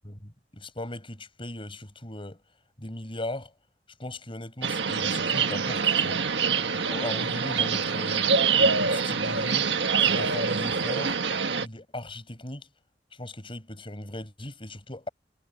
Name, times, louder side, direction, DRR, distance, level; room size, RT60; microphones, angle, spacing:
voice 1, 0.0-2.4 2.8-3.5 4.0-6.2 6.7-8.3 8.6-9.7 10.0-11.2 11.6-12.7 13.1-15.1, left 1 dB, 30° left, 5.5 m, -38 dB
sound 1, 4.6-11.7, right 5 dB, 80° right, 1.5 m, -25 dB
head